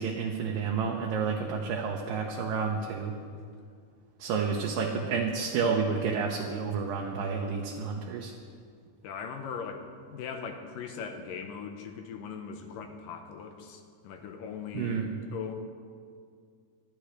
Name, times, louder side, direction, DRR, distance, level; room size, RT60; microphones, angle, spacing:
voice 1, 0.0-3.1 4.2-8.3 14.8-15.1, right 5 dB, 75° right, 0 dB, 2.5 m, -30 dB
voice 2, 9.0-15.0 15.3-15.5, left 6 dB, 75° left, 5 dB, 2.5 m, -39 dB
21.5 x 13.0 x 3.3 m, 2.1 s
omnidirectional pair, 4.2 m